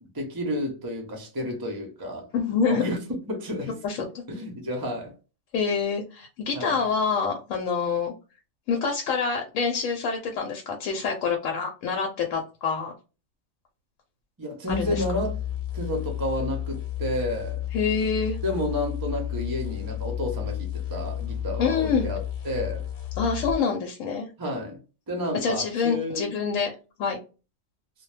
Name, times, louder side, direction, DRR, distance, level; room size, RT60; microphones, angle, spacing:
voice 1, 0.0-2.3 2.7-5.1 6.5-6.8 14.4-15.4 15.7-17.6 18.4-22.8 24.4-24.8 25.1-26.3, left 1 dB, 30° right, 0.4 m, -31 dB
voice 2, 2.3-2.9 3.8-4.2 5.5-8.1 8.7-12.9 14.7-15.0 17.7-18.4 21.6-22.1 23.2-24.3 25.3-26.7 27.0-27.2, left 5 dB, 80° left, 1.0 m, -26 dB
sound 1, 14.7-23.6, left 10 dB, 50° left, 0.7 m, -32 dB
2.2 x 2.1 x 3.1 m
omnidirectional pair, 1.4 m